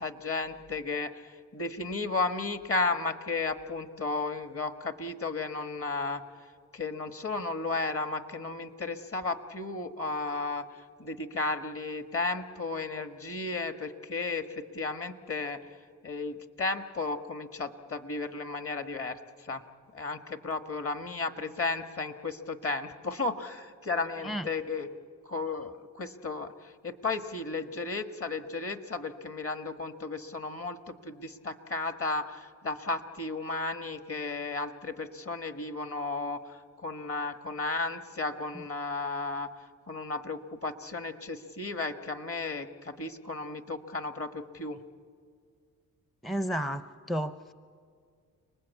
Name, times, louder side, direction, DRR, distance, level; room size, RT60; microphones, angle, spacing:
voice 1, 0.0-6.5 6.7-19.6 19.9-24.9 25.2-44.8, left 3 dB, 35° left, 8 dB, 1.7 m, -34 dB
voice 2, 46.2-47.5, equal, ahead, 12 dB, 0.6 m, -32 dB
30.0 x 20.0 x 8.4 m, 2.1 s
cardioid pair, 70°, 37 cm